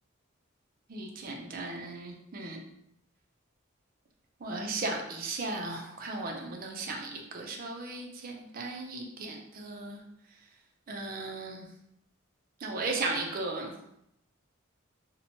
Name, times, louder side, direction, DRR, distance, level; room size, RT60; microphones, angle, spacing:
voice 1, 0.9-2.6 4.4-10.0 10.9-11.7 12.6-13.7, right 3 dB, 45° right, 1 dB, 0.4 m, -36 dB
2.8 x 2.1 x 2.8 m, 0.80 s
head